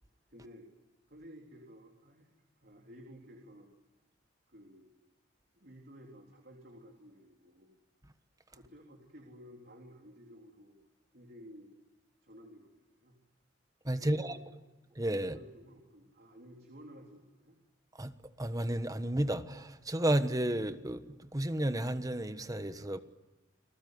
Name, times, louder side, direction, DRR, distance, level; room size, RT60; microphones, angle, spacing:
voice 1, 0.3-0.7 1.1-2.3 2.6-3.7 4.5-4.9 5.5-7.7 8.5-10.8 11.1-11.7 12.2-13.2 14.0-14.6 15.2-17.6, equal, 55° right, 3.9 m, -54 dB
voice 2, 13.8-14.4 14.9-15.4 17.9-18.1 18.4-23.0, right 1 dB, 20° right, 1.3 m, -32 dB
30.0 x 20.5 x 9.5 m
head